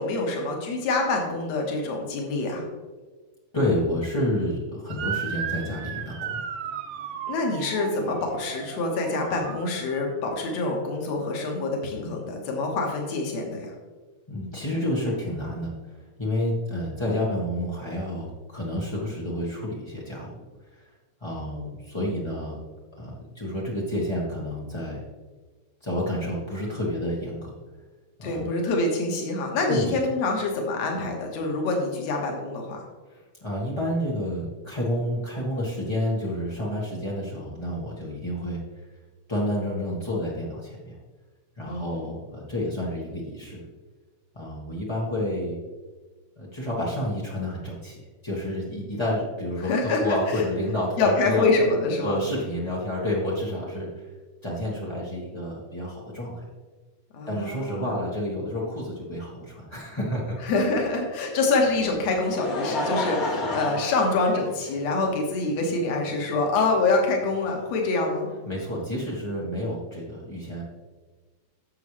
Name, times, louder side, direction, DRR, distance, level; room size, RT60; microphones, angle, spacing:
voice 1, 0.0-2.7 7.3-13.7 28.2-32.8 41.7-42.1 49.6-50.4 51.0-52.3 57.1-57.9 60.4-68.3, left 3 dB, 70° left, 1 dB, 2.6 m, -26 dB
voice 2, 3.5-6.4 14.3-15.7 16.2-20.3 20.7-20.8 21.2-22.6 23.0-25.0 25.8-27.5 28.2-28.5 29.7-29.9 33.4-38.6 39.3-40.9 41.6-43.6 44.3-45.6 46.4-48.0 48.2-51.5 52.0-53.9 54.4-56.4 57.3-60.4 68.5-70.6, left 1 dB, 35° left, -6 dB, 0.4 m, -29 dB
Motor vehicle (road) / Siren, 4.9-10.1, right 7 dB, 75° right, 1.8 m, -35 dB
Laughter, 61.8-65.0 65.8-65.9 67.4-67.5, left 2 dB, 50° left, 1.1 m, -30 dB
11.5 x 7.2 x 3.3 m, 1.3 s
omnidirectional pair, 3.3 m